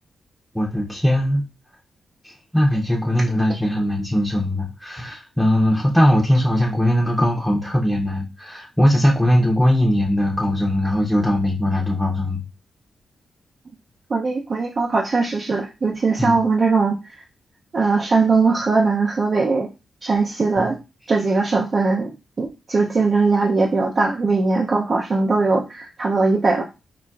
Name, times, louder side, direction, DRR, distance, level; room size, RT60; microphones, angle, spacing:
voice 1, 0.5-1.5 2.2-12.5 16.2-16.4 20.6-20.7, left 1 dB, ahead, -2 dB, 0.7 m, -20 dB
voice 2, 14.1-17.2 17.7-19.7 20.0-20.8 21.1-26.6, right 3 dB, 55° right, 0 dB, 0.4 m, -20 dB
3.9 x 2.1 x 2.2 m, 0.28 s
supercardioid pair, 50°, 0 cm